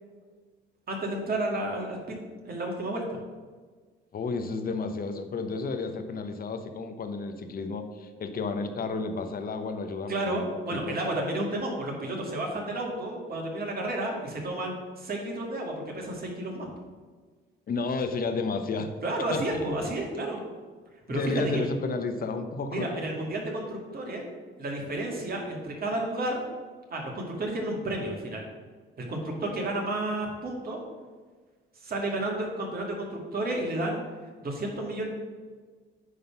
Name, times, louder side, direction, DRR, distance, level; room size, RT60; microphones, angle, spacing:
voice 1, 0.9-2.2 2.4-3.2 10.1-16.7 19.0-20.4 21.1-21.2 21.5-21.7 22.7-24.2 24.6-26.4 26.9-28.4 29.0-30.8 31.8-34.0 34.4-35.1, right 1 dB, 50° right, -1 dB, 2.1 m, -31 dB
voice 2, 4.1-11.0 17.7-18.9 19.3-19.7 21.1-23.0, left 3 dB, 50° left, 8 dB, 0.9 m, -32 dB
9.6 x 3.7 x 5.8 m, 1.4 s
cardioid pair, 90°, 20 cm